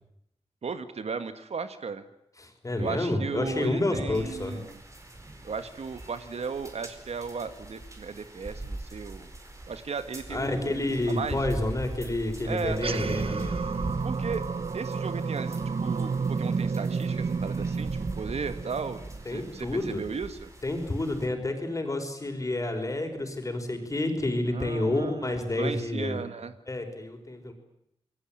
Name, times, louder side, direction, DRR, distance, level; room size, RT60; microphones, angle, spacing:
voice 1, 0.6-2.0 2.8-4.8 5.4-9.3 9.7-11.4 12.4-12.8 14.0-14.4 14.7-19.0 19.3-20.5 24.5-26.5, right 5 dB, 75° right, 10 dB, 1.8 m, -36 dB
voice 2, 2.4-4.6 10.3-13.8 19.3-20.0 20.6-26.2 26.7-27.5, left 1 dB, 30° left, 4 dB, 5.3 m, -29 dB
sound 1, 4.1-21.3, right 2 dB, 30° right, 4.9 m, -42 dB
sound 2, 12.7-19.4, right 5 dB, 60° right, 1.1 m, -31 dB
28.0 x 21.5 x 9.0 m, 0.78 s
wide cardioid pair, 130°, 11 cm